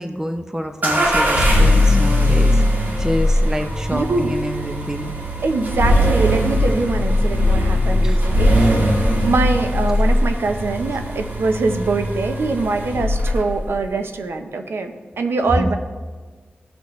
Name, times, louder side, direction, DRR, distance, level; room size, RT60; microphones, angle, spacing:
voice 1, 0.0-5.1 8.0-8.2 8.6-8.7 15.6-15.8, equal, 15° right, 6 dB, 0.7 m, -27 dB
sound 1, 0.8-13.7, left 1 dB, 50° right, 1.7 m, -19 dB
voice 2, 3.9-4.3 5.4-15.8, right 3 dB, 85° right, 6 dB, 0.8 m, -23 dB
16.5 x 6.1 x 3.2 m, 1.4 s
wide cardioid pair, 65°, 4 cm